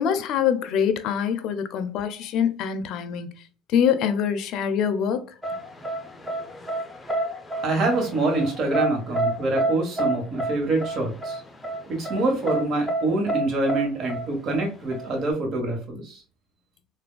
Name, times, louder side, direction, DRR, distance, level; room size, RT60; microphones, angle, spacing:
voice 1, 0.0-3.3 3.7-5.2, left 8 dB, 65° left, 0.4 m, -24 dB
sound 1, 5.4-15.3, right 2 dB, 15° left, 0.6 m, -28 dB
voice 2, 7.6-11.4 11.9-16.2, right 2 dB, 50° right, 1.2 m, -25 dB
3.3 x 2.2 x 2.2 m
supercardioid pair, 90°, 0 cm